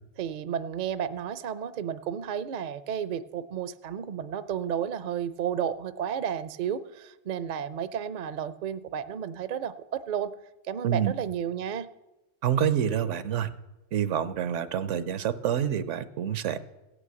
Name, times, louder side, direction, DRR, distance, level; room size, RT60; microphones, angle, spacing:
voice 1, 0.2-10.3 10.6-11.9, right 8 dB, 55° right, 14 dB, 0.5 m, -32 dB
voice 2, 12.4-13.5 13.9-16.6, right 9 dB, 80° right, 13 dB, 1.0 m, -27 dB
16.0 x 6.2 x 7.8 m, 1.0 s
omnidirectional pair, 1.2 m